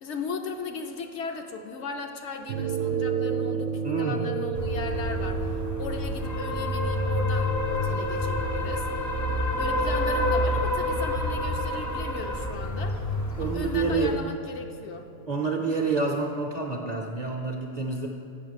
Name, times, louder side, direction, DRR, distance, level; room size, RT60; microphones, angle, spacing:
voice 1, 0.0-5.5 5.8-8.9 9.6-13.0 13.4-15.1, left 4 dB, 65° left, 4 dB, 1.0 m, -36 dB
sound 1, 2.5-17.0, right 7 dB, 70° right, 0.9 m, -35 dB
voice 2, 3.8-4.2 13.4-14.2 15.3-18.1, right 4 dB, 45° right, 1 dB, 0.6 m, -28 dB
sound 2, 4.5-14.1, left 1 dB, 30° left, 0.3 m, -28 dB
7.9 x 5.9 x 6.4 m, 2.5 s
omnidirectional pair, 1.3 m